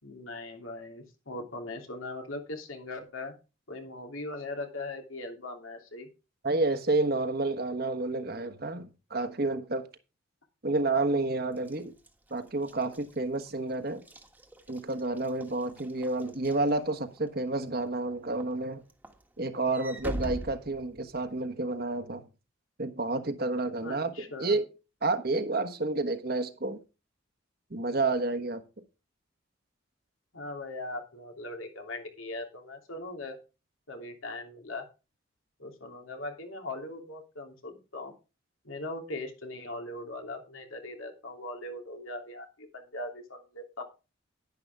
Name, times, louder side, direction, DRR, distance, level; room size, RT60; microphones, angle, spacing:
voice 1, 0.0-3.3 3.7-6.1 23.8-24.5 30.3-33.4 33.9-34.8 35.6-38.1 38.6-43.8, left 2 dB, 90° left, 3.0 m, -40 dB
voice 2, 6.4-9.9 10.6-11.9 12.3-14.0 14.7-18.8 19.4-22.3 22.8-24.7 25.0-26.8 27.7-28.6, right 2 dB, 50° right, 1.3 m, -30 dB
Walk footsteps / Slam, 11.6-17.3 17.8-18.1 18.4-21.4, equal, 10° right, 1.4 m, -43 dB
10.5 x 10.5 x 3.5 m
head